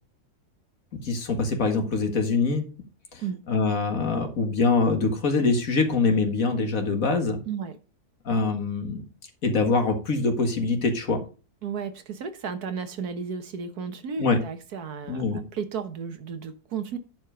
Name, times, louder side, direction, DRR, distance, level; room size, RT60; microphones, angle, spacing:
voice 1, 1.0-2.6 3.1-3.2 3.5-7.4 8.3-9.0 9.4-11.2 14.2-14.4 15.1-15.4, left 4 dB, 60° left, 5 dB, 2.0 m, -24 dB
voice 2, 11.6-17.0, right 6 dB, 80° right, 9 dB, 1.7 m, -33 dB
10.5 x 5.1 x 5.0 m, 0.34 s
omnidirectional pair, 1.6 m